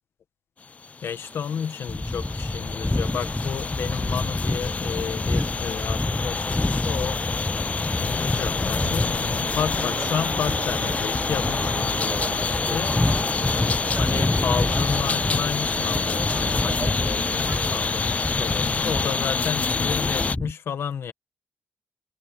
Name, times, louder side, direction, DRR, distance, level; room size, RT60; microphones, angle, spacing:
sound 1, 0.7-20.4, left 4 dB, 35° left, 0.4 m, -28 dB
voice 1, 1.0-7.2 8.0-13.0 13.5-21.1, left 7 dB, 70° left, 1.3 m, -32 dB
sound 2, 1.2-19.2, right 5 dB, 45° right, 1.3 m, -39 dB
sound 3, 1.9-20.5, left 1 dB, 10° left, 1.0 m, -28 dB
cardioid pair, 110°, 4 cm